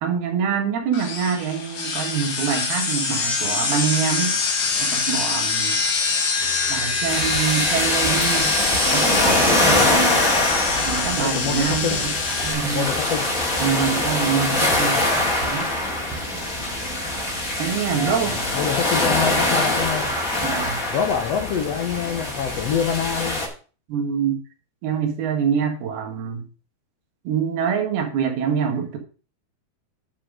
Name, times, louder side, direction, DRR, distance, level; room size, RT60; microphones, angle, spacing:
voice 1, 0.0-4.4 4.8-5.8 6.7-8.5 8.9-10.2 10.9-12.1 12.4-12.9 13.6-15.1 15.4-15.7 17.6-18.4 20.4-20.8 23.9-24.4 24.8-26.5 27.3-29.0, right 7 dB, 85° right, 4 dB, 3.6 m, -25 dB
sound 1, 0.9-12.5, left 4 dB, 55° left, 2.7 m, -24 dB
sound 2, 6.4-20.3, right 4 dB, 50° right, 2.0 m, -39 dB
sound 3, 7.1-23.5, left 2 dB, 25° left, 2.3 m, -23 dB
voice 2, 11.1-12.0 12.7-13.2 17.9-20.1 20.9-23.4, left 7 dB, 80° left, 5 dB, 1.4 m, -26 dB
9.5 x 5.4 x 6.2 m, 0.37 s
omnidirectional pair, 4.4 m